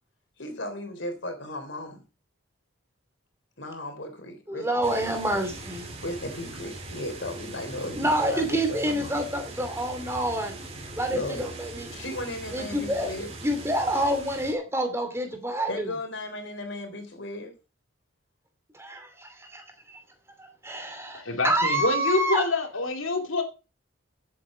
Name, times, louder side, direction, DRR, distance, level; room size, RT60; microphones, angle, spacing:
voice 1, 0.4-2.0 3.6-5.2 6.0-9.2 11.1-11.5 11.9-13.3 15.7-17.5, left 1 dB, 60° left, 6 dB, 3.7 m, -36 dB
voice 2, 4.5-5.9 7.9-10.5 11.0-11.9 12.5-13.1 13.4-15.9 18.7-20.0 20.4-22.4, right 1 dB, 15° right, 6 dB, 2.7 m, -28 dB
sound 1, 4.8-14.5, right 2 dB, 30° right, 3.4 m, -41 dB
voice 3, 21.1-23.4, left 2 dB, 80° left, 5 dB, 2.7 m, -26 dB
14.5 x 8.5 x 5.1 m, 0.32 s
head